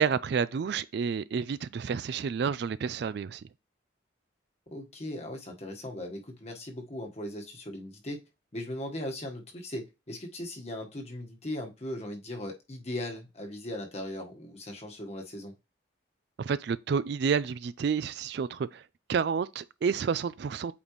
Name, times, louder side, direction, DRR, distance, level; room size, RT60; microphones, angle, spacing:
voice 1, 0.0-3.4 16.4-18.8 19.1-20.7, right 6 dB, 55° right, 0.3 m, -29 dB
voice 2, 4.7-8.2 8.5-15.5, left 1 dB, 35° left, 1.3 m, -38 dB
8.6 x 4.1 x 3.1 m
head